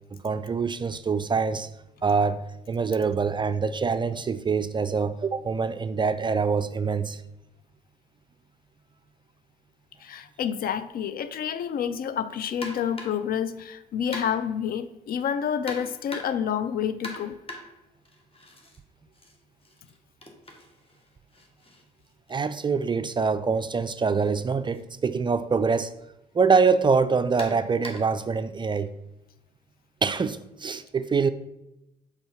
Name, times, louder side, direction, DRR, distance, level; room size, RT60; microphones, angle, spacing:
voice 1, 0.1-1.7 2.0-7.2 22.3-25.9 26.3-28.9 30.0-31.3, right 5 dB, 25° right, 0.4 m, -25 dB
voice 2, 10.0-17.4, left 8 dB, 50° left, 0.5 m, -29 dB
sound 1, 12.6-13.3 14.1-14.6 15.7-16.5 17.0-18.8 19.1-23.0 24.1-24.3 24.7-24.8 25.7-25.9 27.4-28.2, left 1 dB, 30° left, 1.5 m, -42 dB
5.3 x 4.1 x 5.7 m
figure-of-eight pair, 45°, 20 cm